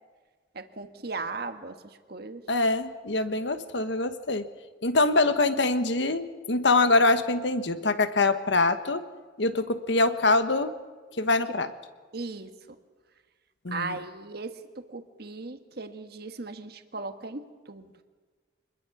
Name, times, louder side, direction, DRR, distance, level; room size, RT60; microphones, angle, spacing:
voice 1, 0.5-1.8 2.1-2.4 12.1-12.5 13.7-17.9, right 3 dB, 60° right, 7 dB, 1.5 m, -37 dB
voice 2, 2.5-4.5 4.8-9.0 9.4-10.7 11.2-11.7 13.6-14.0, left 3 dB, 80° left, 10 dB, 1.4 m, -24 dB
25.5 x 21.0 x 6.1 m, 1.4 s
head